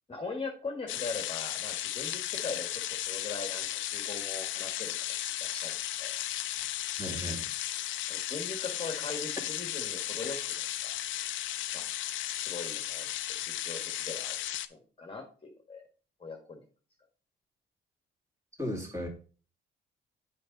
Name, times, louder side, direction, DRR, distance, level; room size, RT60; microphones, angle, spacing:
voice 1, 0.1-5.0 5.4-6.2 8.1-10.9 11.7-11.9 12.4-14.4 14.7-15.8 16.2-16.6, left 3 dB, 25° left, 2 dB, 1.5 m, -41 dB
sound 1, 0.9-14.7, left 13 dB, 75° left, 0.5 m, -35 dB
voice 2, 7.0-7.5 18.6-19.1, equal, 15° right, -1 dB, 2.6 m, -35 dB
7.7 x 5.0 x 3.9 m, 0.39 s
cardioid pair, 90°, 20 cm